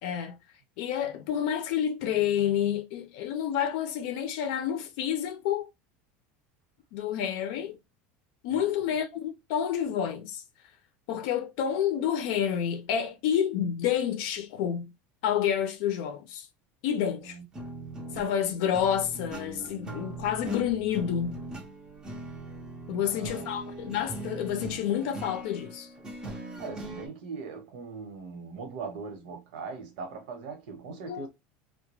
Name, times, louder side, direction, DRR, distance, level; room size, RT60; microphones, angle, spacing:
voice 1, 0.0-0.4 0.8-5.7 6.9-7.8 8.4-10.4 11.1-14.9 15.2-16.5 16.8-17.4 18.1-21.4 22.9-25.9 31.1-31.3, left 9 dB, 65° left, 0.5 m, -29 dB
voice 2, 8.5-8.9 17.2-17.4 22.9-23.5 26.6-31.3, right 4 dB, 80° right, 1.0 m, -40 dB
sound 1, 17.5-27.1, right 2 dB, 15° right, 0.5 m, -40 dB
2.3 x 2.1 x 3.0 m
cardioid pair, 165°, 5 cm